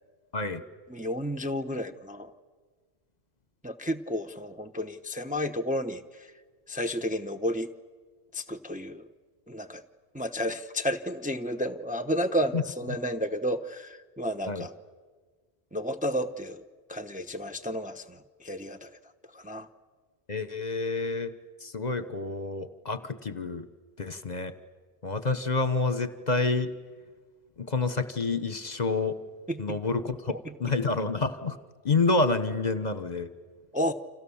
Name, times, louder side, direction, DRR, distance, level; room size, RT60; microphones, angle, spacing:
voice 1, 0.9-2.3 3.6-6.3 6.7-7.7 8.3-9.1 9.5-9.8 10.1-14.7 15.7-18.9 19.3-19.7 29.5-29.8 30.4-30.5 33.7-33.9, equal, 10° right, 7 dB, 0.8 m, -32 dB
voice 2, 20.3-21.3 21.6-23.7 24.0-24.5 25.0-26.7 27.6-29.1 29.6-31.6 31.8-33.3, left 3 dB, 40° left, 12 dB, 1.2 m, -28 dB
30.0 x 27.5 x 7.2 m, 1.5 s
omnidirectional pair, 1.1 m